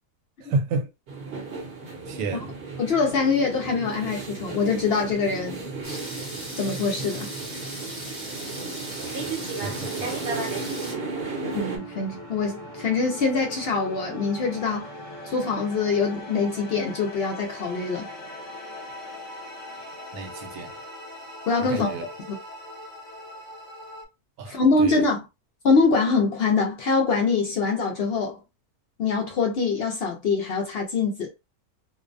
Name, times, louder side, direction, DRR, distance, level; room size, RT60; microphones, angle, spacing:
voice 1, 0.4-0.9 2.1-2.6 9.5-10.4 20.1-20.8 21.6-22.0 24.4-25.1, right 3 dB, 80° right, 1.1 m, -31 dB
sound 1, 1.1-11.8, right 4 dB, 50° right, 0.8 m, -34 dB
voice 2, 2.8-6.0 6.6-7.3 11.5-14.9 15.2-18.1 21.5-21.9 22.3-22.4 24.5-25.2 25.6-28.4 29.0-31.3, left 4 dB, 65° left, 0.6 m, -24 dB
sound 2, 5.7-24.1, left 1 dB, 35° left, 1.0 m, -41 dB
sound 3, 5.8-10.9, right 1 dB, 15° right, 0.6 m, -38 dB
2.5 x 2.1 x 2.5 m
omnidirectional pair, 1.6 m